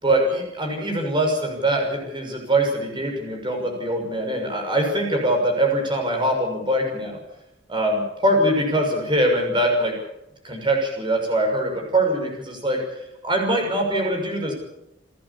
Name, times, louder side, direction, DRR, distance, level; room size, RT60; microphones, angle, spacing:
voice 1, 0.0-7.2 7.7-9.9 10.4-12.8 13.2-14.5, right 1 dB, 25° right, 2 dB, 6.3 m, -23 dB
29.5 x 11.0 x 8.6 m, 0.88 s
head